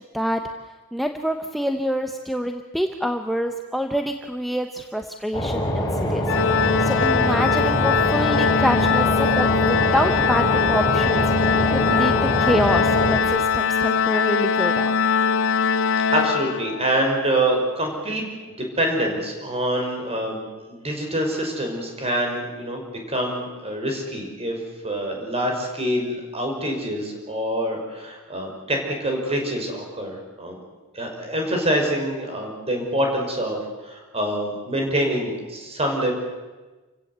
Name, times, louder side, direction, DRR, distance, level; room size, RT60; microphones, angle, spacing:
voice 1, 0.9-6.2 6.5-15.0, equal, ahead, 5 dB, 0.9 m, -26 dB
sound 1, 5.3-13.2, equal, 20° left, 3.8 m, -24 dB
Organ, 6.3-17.0, left 6 dB, 60° left, 0.7 m, -21 dB
voice 2, 16.1-22.8 23.1-24.6 24.8-30.6 30.9-36.1, right 1 dB, 30° right, 2 dB, 5.7 m, -26 dB
29.0 x 16.5 x 8.1 m, 1.2 s
head